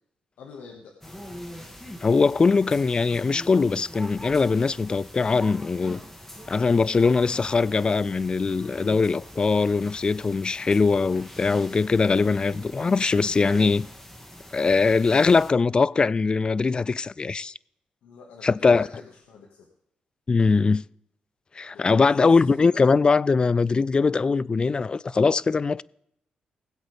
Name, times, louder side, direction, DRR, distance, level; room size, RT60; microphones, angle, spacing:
voice 1, 0.4-0.9 18.0-19.7 21.7-22.9, left 5 dB, 90° left, 1.8 m, -45 dB
sound 1, 1.0-15.5, left 1 dB, 10° left, 2.2 m, -42 dB
voice 2, 2.0-6.0 6.5-13.9 14.5-17.5 18.4-18.9 20.3-20.8 21.6-25.8, left 4 dB, 30° left, 0.3 m, -21 dB
19.5 x 8.2 x 3.5 m
cardioid pair, 85°, 3 cm